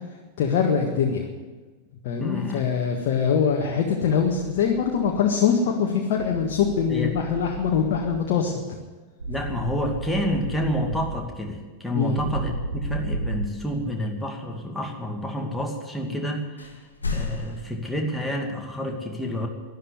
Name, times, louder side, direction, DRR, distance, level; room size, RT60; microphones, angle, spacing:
voice 1, 0.4-1.2 2.0-8.6 11.9-12.2, left 6 dB, 50° left, 1 dB, 1.6 m, -23 dB
voice 2, 2.2-2.6 6.9-7.1 9.3-16.8 17.1-19.5, equal, 5° left, 1 dB, 2.5 m, -29 dB
sound 1, 4.3-5.2 6.2-8.2 9.2-11.2 12.2-13.5, right 2 dB, 80° right, 1.0 m, -33 dB
sound 2, 7.6-8.4 9.2-10.2 13.7-13.8 15.8-15.9 16.6-17.7, left 4 dB, 75° left, 1.7 m, -35 dB
12.5 x 11.5 x 9.9 m, 1.3 s
figure-of-eight pair, 90°, 0 cm